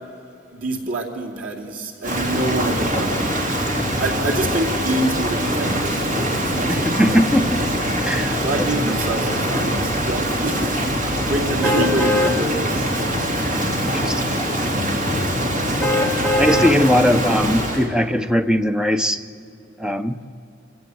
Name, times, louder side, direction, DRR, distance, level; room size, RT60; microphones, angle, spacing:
voice 1, 0.5-3.3 4.0-7.2 8.4-12.9 16.9-17.1, right 2 dB, 80° right, -1 dB, 2.7 m, -26 dB
Rain, 2.0-17.9, equal, 40° right, 3.0 m, -23 dB
voice 2, 6.7-8.4 8.8-8.9 13.8-14.4 16.4-19.2 19.8-20.2, equal, 5° right, 9 dB, 0.7 m, -20 dB
sound 1, 11.6-12.3 12.9-13.0 15.8-16.7 17.3-17.4, left 1 dB, 10° left, 1.5 m, -21 dB
26.5 x 16.0 x 7.8 m, 2.7 s
head